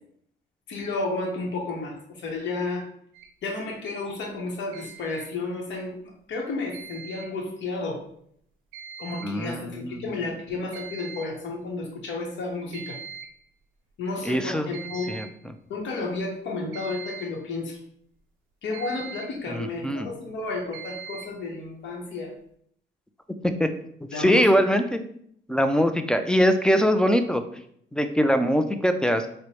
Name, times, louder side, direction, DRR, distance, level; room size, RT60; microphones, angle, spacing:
voice 1, 0.7-2.9 3.4-5.9 6.3-8.0 9.0-13.0 14.0-15.2 15.7-17.8 18.6-22.3 24.1-24.4, left 3 dB, 70° left, -1 dB, 0.8 m, -32 dB
sound 1, 3.1-3.3 4.7-5.3 6.7-7.3 8.7-9.3 9.6-9.7 10.3-10.4 10.7-11.3 12.7-13.3 14.7-15.4 16.7-17.4 18.7-19.4 20.7-21.4, right 6 dB, 85° right, 0.5 m, -41 dB
voice 2, 9.2-10.1 14.2-14.7 15.1-15.3 19.5-20.1 23.6-23.7 24.2-25.0 25.5-27.4 27.9-29.3, equal, 5° left, 8 dB, 0.3 m, -22 dB
4.4 x 2.0 x 3.1 m, 0.68 s
cardioid pair, 90°, 20 cm